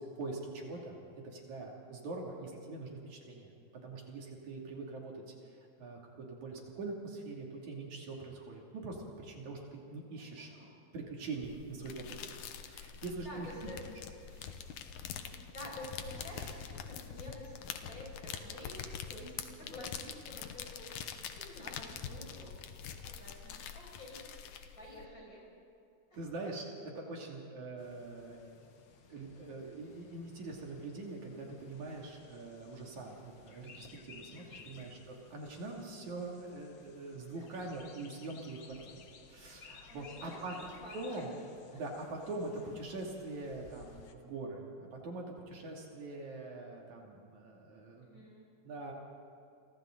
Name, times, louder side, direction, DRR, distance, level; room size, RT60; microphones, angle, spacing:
voice 1, 0.2-1.0 1.3-3.5 3.8-5.5 5.8-10.5 10.9-12.3 12.7-13.7 14.3-14.7 16.4-16.6 26.1-28.4 29.1-39.0 39.3-40.6 40.9-41.3 41.7-48.2 48.6-48.9, right 3 dB, 70° right, -1 dB, 4.0 m, -43 dB
voice 2, 10.1-10.8 13.2-13.8 14.3-14.4 15.0-17.5 17.8-20.9 21.1-22.5 22.8-24.3 24.7-25.4 26.1-26.2 34.3-34.7 37.3-37.4 39.9-41.3 41.7-41.8 48.0-48.5, left 1 dB, 25° left, -4 dB, 6.5 m, -50 dB
sound 1, 11.4-25.0, left 8 dB, 90° left, 2.6 m, -45 dB
sound 2, 27.8-44.1, left 6 dB, 60° left, 1.2 m, -58 dB
30.0 x 24.5 x 3.9 m, 2.6 s
omnidirectional pair, 3.5 m